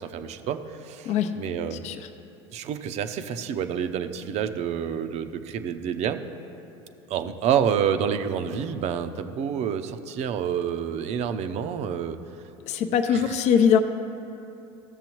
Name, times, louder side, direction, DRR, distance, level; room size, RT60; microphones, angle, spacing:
voice 1, 0.0-1.8 2.5-6.2 7.1-12.2 13.1-13.3, right 8 dB, 50° right, 10 dB, 0.6 m, -28 dB
voice 2, 12.7-13.8, left 8 dB, 55° left, 7 dB, 0.6 m, -21 dB
15.0 x 6.9 x 3.0 m, 2.9 s
hypercardioid pair, 90°, 14 cm